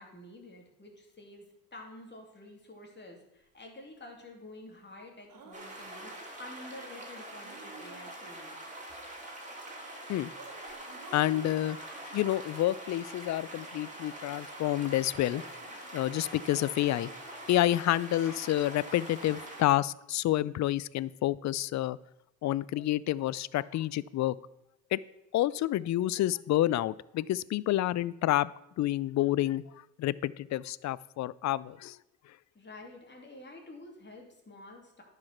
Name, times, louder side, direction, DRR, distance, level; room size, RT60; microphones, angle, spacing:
voice 1, 0.0-1.4 1.7-8.6 32.5-35.0, left 2 dB, 30° left, 1 dB, 2.8 m, -49 dB
Laughter, 5.3-6.3 7.4-8.4 10.2-14.1 14.4-17.5, right 4 dB, 75° right, 2.0 m, -55 dB
sound 1, 5.5-19.6, right 1 dB, 20° right, 2.7 m, -44 dB
voice 2, 11.1-11.8 12.1-15.4 15.9-17.1 17.5-22.0 22.4-24.4 24.9-25.0 25.3-28.5 28.8-29.6 30.0-32.0, left 14 dB, 50° left, 21 dB, 0.4 m, -29 dB
10.5 x 5.0 x 5.8 m, 0.87 s
supercardioid pair, 60°, 35 cm